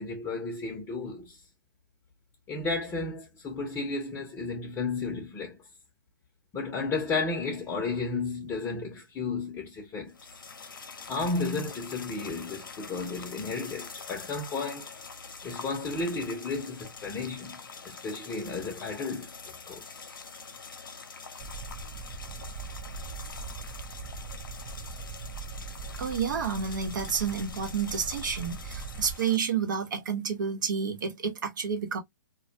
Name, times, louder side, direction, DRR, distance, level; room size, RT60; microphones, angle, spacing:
voice 1, 0.0-1.4 2.5-5.6 6.5-10.2 11.1-14.9 15.4-20.1, left 3 dB, 15° left, 0.6 m, -33 dB
sound 1, 10.1-29.4, left 5 dB, 80° left, 0.7 m, -45 dB
sound 2, 21.4-29.1, right 4 dB, 35° right, 0.4 m, -41 dB
voice 2, 26.0-32.0, right 6 dB, 70° right, 0.9 m, -30 dB
2.2 x 2.2 x 2.6 m
hypercardioid pair, 135°, 11 cm